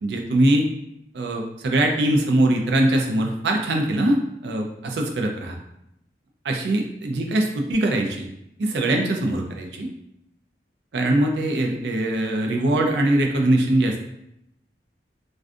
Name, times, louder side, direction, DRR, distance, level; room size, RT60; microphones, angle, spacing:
voice 1, 0.0-0.6 1.1-5.6 6.4-8.3 8.6-9.9 10.9-14.0, right 1 dB, 70° right, 2 dB, 0.4 m, -22 dB
2.4 x 2.2 x 2.5 m, 0.80 s
head